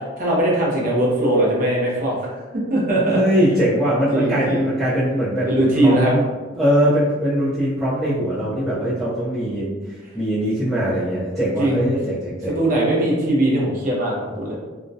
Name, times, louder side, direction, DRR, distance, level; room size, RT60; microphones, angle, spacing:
voice 1, 0.2-2.2 2.7-3.2 4.1-4.7 5.5-6.1 8.7-8.8 11.6-11.9 12.5-14.6, right 1 dB, 45° right, -4 dB, 0.6 m, -20 dB
voice 2, 3.1-6.2 6.6-9.7 10.1-12.6, equal, ahead, -14 dB, 0.5 m, -21 dB
2.2 x 2.1 x 2.6 m, 1.3 s
head